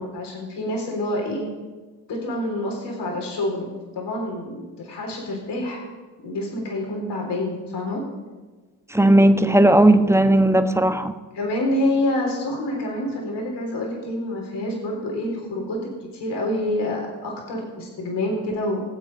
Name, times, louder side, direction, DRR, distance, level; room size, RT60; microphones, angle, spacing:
voice 1, 0.0-1.5 2.1-5.8 6.2-8.0 11.3-18.8, left 1 dB, 60° left, -1 dB, 3.7 m, -27 dB
voice 2, 8.9-11.1, right 1 dB, 5° right, 9 dB, 1.1 m, -16 dB
21.0 x 7.8 x 5.3 m, 1.3 s
hypercardioid pair, 50°, 46 cm